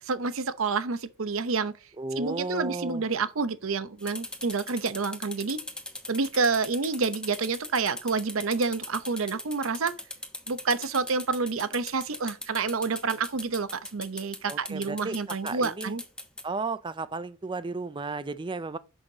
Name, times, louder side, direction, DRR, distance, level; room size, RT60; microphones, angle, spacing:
voice 1, 0.0-1.7 2.2-5.6 6.1-9.9 10.5-16.0, right 4 dB, 70° right, 0.7 m, -28 dB
voice 2, 2.0-3.0 14.5-15.2 15.4-15.9 16.4-18.8, right 3 dB, 20° right, 0.4 m, -33 dB
sound 1, 4.0-16.4, left 1 dB, 5° left, 0.9 m, -39 dB
6.4 x 6.4 x 2.8 m
head